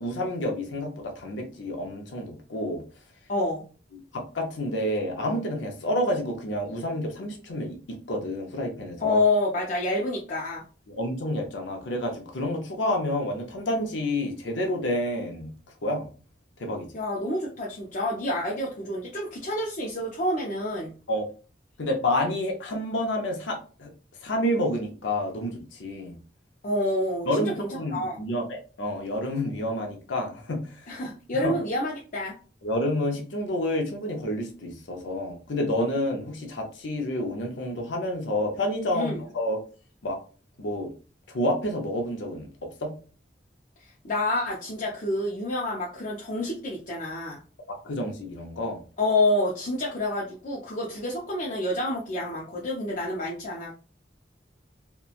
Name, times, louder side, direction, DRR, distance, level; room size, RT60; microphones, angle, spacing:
voice 1, 0.0-2.8 3.9-9.2 10.9-15.5 15.8-16.1 16.6-16.9 21.1-21.2 21.8-23.9 24.2-26.2 27.3-30.8 31.4-31.6 32.6-39.6 40.0-40.2 40.6-40.9 41.3-42.5 42.8-42.9 47.7-48.8, left 1 dB, 90° left, 2 dB, 0.6 m, -29 dB
voice 2, 3.3-3.6 9.0-10.6 16.9-20.9 26.6-28.2 30.9-32.4 38.9-39.2 44.0-47.4 49.0-53.7, left 2 dB, 45° left, -3 dB, 0.5 m, -28 dB
2.8 x 2.2 x 2.4 m, 0.37 s
head